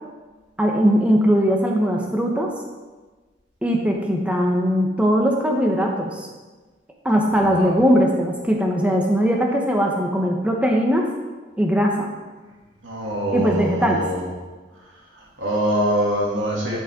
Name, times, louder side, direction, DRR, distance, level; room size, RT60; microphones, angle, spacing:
voice 1, 0.6-2.5 3.6-6.3 7.0-11.1 11.6-12.1 13.3-14.0, equal, 5° right, 0 dB, 1.0 m, -20 dB
voice 2, 7.3-7.7 12.8-14.2 15.4-16.8, right 1 dB, 85° right, -4 dB, 2.5 m, -24 dB
12.5 x 5.5 x 3.7 m, 1.3 s
head